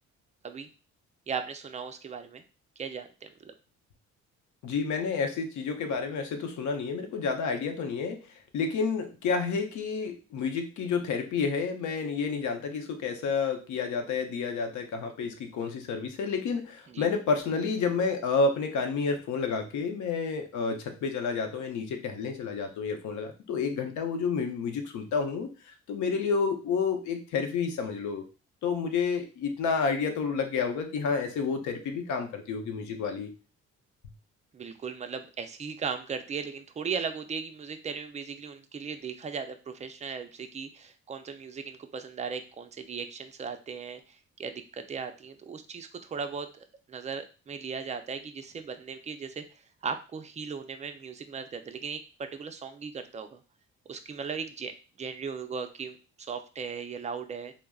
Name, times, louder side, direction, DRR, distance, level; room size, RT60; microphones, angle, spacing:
voice 1, 1.3-2.4 2.8-3.5 16.9-17.1 34.5-53.4 53.9-57.5, right 6 dB, 25° right, 7 dB, 0.3 m, -37 dB
voice 2, 4.6-8.2 8.5-25.5 25.9-28.2 28.6-33.3, left 5 dB, 75° left, 5 dB, 0.6 m, -30 dB
3.4 x 2.0 x 2.3 m, 0.34 s
cardioid pair, 90°, 30 cm